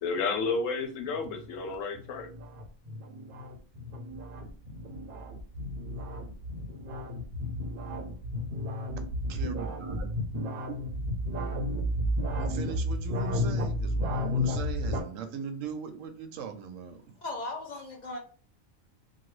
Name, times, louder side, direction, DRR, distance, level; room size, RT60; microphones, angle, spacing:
voice 1, 0.0-2.3, left 4 dB, 80° left, 6 dB, 1.0 m, -31 dB
sound 1, 1.1-15.0, left 1 dB, 55° right, 0.8 m, -32 dB
voice 2, 9.2-10.1 10.7-10.8 12.4-17.0, right 6 dB, 80° right, 7 dB, 1.0 m, -39 dB
voice 3, 17.2-18.2, left 2 dB, 50° left, 0 dB, 0.6 m, -37 dB
3.1 x 2.2 x 3.1 m, 0.40 s
omnidirectional pair, 1.3 m